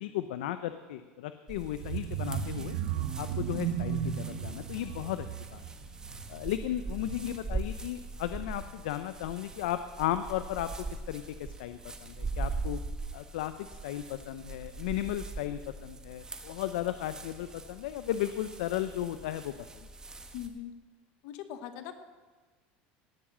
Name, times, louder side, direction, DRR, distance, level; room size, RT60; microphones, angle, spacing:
voice 1, 0.0-2.8 3.2-5.3 5.5-5.6 6.3-12.8 13.1-19.9, left 13 dB, 90° left, 10 dB, 0.6 m, -35 dB
sound 1, 1.5-20.5, right 3 dB, 15° right, 1.3 m, -42 dB
sound 2, 1.7-7.5 7.9-8.2 8.5-8.6, right 8 dB, 80° right, 1.4 m, -35 dB
voice 2, 20.3-20.7 21.2-21.9, left 11 dB, 70° left, 8 dB, 1.1 m, -40 dB
17.5 x 7.2 x 7.4 m, 1.4 s
supercardioid pair, 125°, 5 cm